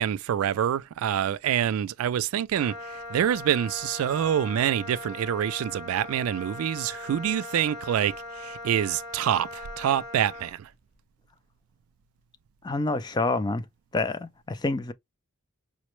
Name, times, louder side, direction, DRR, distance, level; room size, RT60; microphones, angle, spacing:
voice 1, 0.0-10.7, right 9 dB, 90° right, 0.3 m, -26 dB
Wind instrument woodwind instrument, 2.5-10.6, left 2 dB, 60° left, 1.5 m, -40 dB
voice 2, 12.6-13.7 13.9-14.9, left 3 dB, 20° left, 0.3 m, -27 dB
5.0 x 2.1 x 3.0 m
head